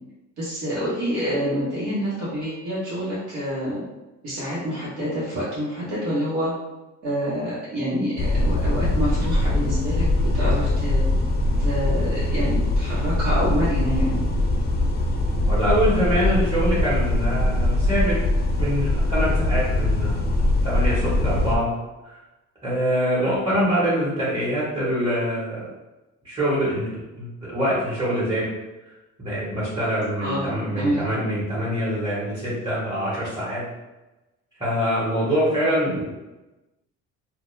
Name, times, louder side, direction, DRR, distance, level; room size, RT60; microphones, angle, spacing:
voice 1, 0.4-3.8 4.2-6.5 7.0-10.0 10.3-11.0 11.6-14.2 30.2-31.1, equal, 85° right, -9 dB, 1.0 m, -27 dB
sound 1, 8.2-21.6, left 1 dB, 35° left, 0.4 m, -22 dB
voice 2, 15.5-18.2 18.6-20.3 20.6-21.7 22.0-22.2 22.6-25.7 26.2-28.5 29.2-33.6 34.6-36.1, equal, 15° right, -9 dB, 0.9 m, -24 dB
2.2 x 2.1 x 3.0 m, 1.1 s
cardioid pair, 100°, 30 cm